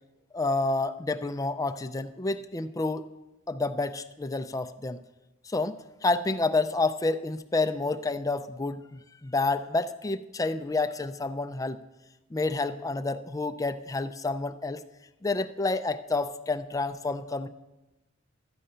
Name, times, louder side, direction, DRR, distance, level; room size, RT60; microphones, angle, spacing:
voice 1, 0.3-3.0 3.5-5.0 5.4-11.8 12.3-14.8 15.2-17.5, left 3 dB, 15° left, 10 dB, 0.4 m, -29 dB
13.0 x 8.8 x 5.5 m, 1.1 s
head